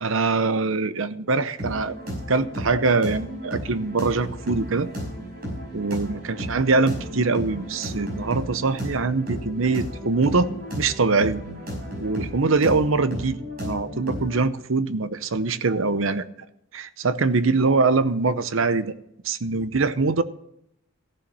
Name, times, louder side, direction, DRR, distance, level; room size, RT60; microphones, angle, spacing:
voice 1, 0.0-1.9 2.3-4.9 5.7-10.5 10.8-11.4 12.0-16.2 16.7-18.9 19.2-20.2, right 3 dB, 75° right, 0.8 m, -23 dB
sound 1, 1.6-14.4, equal, 45° right, 5.5 m, -34 dB
15.5 x 7.2 x 6.1 m
head